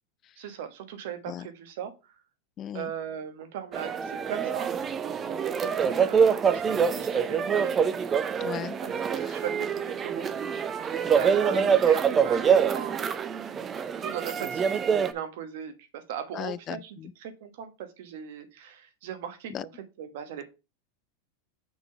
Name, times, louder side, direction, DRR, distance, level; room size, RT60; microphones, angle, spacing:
voice 1, 0.4-2.2 2.7-4.7 5.0-7.7 8.8-10.3 11.1-13.1 14.0-19.7 20.0-20.4, right 9 dB, 70° right, 1.3 m, -38 dB
voice 2, 2.6-2.9 8.4-8.8 9.3-9.4 11.5-11.8 16.3-17.1 19.5-19.7, left 10 dB, 35° left, 0.3 m, -37 dB
sound 1, 3.7-15.1, right 7 dB, 25° right, 0.6 m, -25 dB
6.0 x 3.8 x 5.6 m
supercardioid pair, 120°, 0 cm